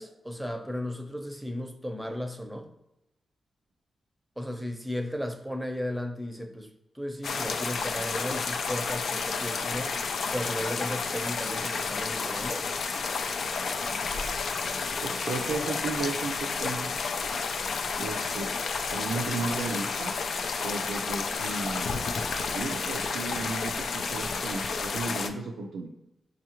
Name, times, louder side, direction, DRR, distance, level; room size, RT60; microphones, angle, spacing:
voice 1, 0.0-2.7 4.4-6.7 6.9-9.9 10.3-12.7, left 1 dB, 5° right, 4 dB, 0.7 m, -35 dB
sound 1, 7.2-25.3, left 4 dB, 75° left, 0.3 m, -31 dB
voice 2, 15.0-17.0 18.0-18.5 18.9-20.2 20.6-21.9 22.5-25.9, right 3 dB, 90° right, 1 dB, 0.4 m, -34 dB
4.7 x 2.4 x 2.9 m, 0.91 s
cardioid pair, 60°, 0 cm